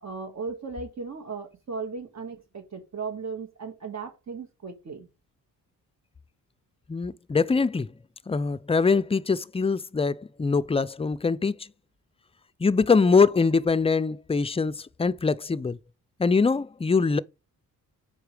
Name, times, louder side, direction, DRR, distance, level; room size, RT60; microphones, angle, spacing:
voice 1, 0.0-5.1, right 4 dB, 50° right, 1.8 m, -36 dB
voice 2, 6.9-7.9 8.3-11.7 12.6-15.8 16.2-17.2, left 4 dB, 15° left, 0.4 m, -23 dB
7.9 x 5.6 x 3.3 m
cardioid pair, 95°, 35 cm